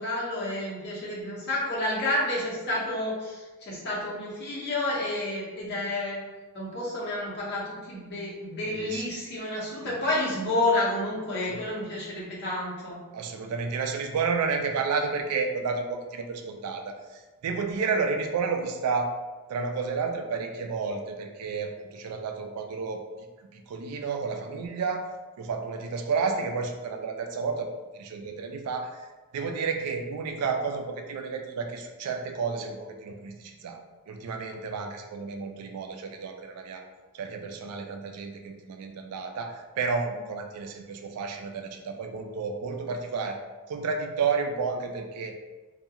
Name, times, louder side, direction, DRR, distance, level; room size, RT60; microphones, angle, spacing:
voice 1, 0.0-6.2 6.5-13.0, left 1 dB, 50° left, -6 dB, 0.8 m, -30 dB
voice 2, 8.7-9.0 9.8-10.0 11.5-11.6 13.1-19.1 19.5-23.0 23.5-25.1 25.4-27.7 27.9-29.1 29.3-33.8 34.1-36.8 37.1-43.4 43.7-45.3, right 5 dB, 85° right, 4 dB, 0.3 m, -31 dB
2.3 x 2.2 x 2.8 m, 1.2 s
head